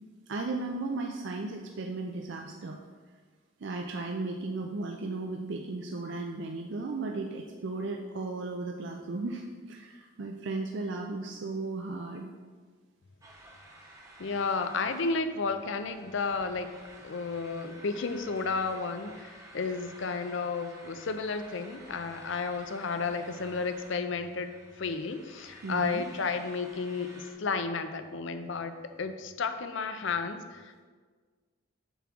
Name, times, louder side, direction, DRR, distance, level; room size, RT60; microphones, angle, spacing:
voice 1, 0.3-2.8 3.6-12.3 25.6-26.0, right 3 dB, 55° right, 2 dB, 0.4 m, -35 dB
sound 1, 13.2-27.3, right 1 dB, 15° right, 0.8 m, -52 dB
voice 2, 14.2-16.7 17.0-30.8, left 4 dB, 60° left, 9 dB, 0.5 m, -32 dB
6.9 x 3.7 x 6.0 m, 1.5 s
head